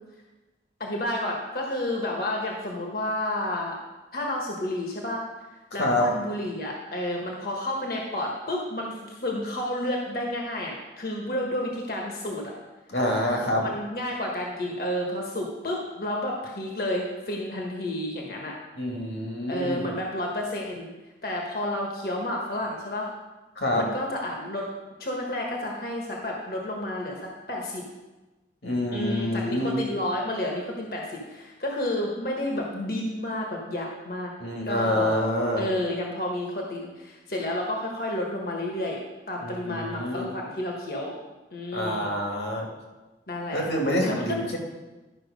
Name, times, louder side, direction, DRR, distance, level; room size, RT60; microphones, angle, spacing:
voice 1, 0.8-3.8 4.1-5.2 5.7-12.5 13.6-18.5 19.5-20.9 21.2-23.1 23.8-24.7 25.0-27.2 27.5-27.9 28.9-34.3 34.7-35.2 35.6-39.0 39.3-41.2 41.5-42.2 43.3-43.6 44.1-44.6, left 1 dB, 55° left, -1 dB, 1.3 m, -30 dB
voice 2, 5.7-6.1 12.9-13.7 18.8-19.9 23.6-23.9 28.6-29.8 34.4-35.6 39.4-40.3 41.7-42.7 43.5-44.6, left 1 dB, 80° left, 0 dB, 2.3 m, -27 dB
11.5 x 5.8 x 5.2 m, 1.1 s
head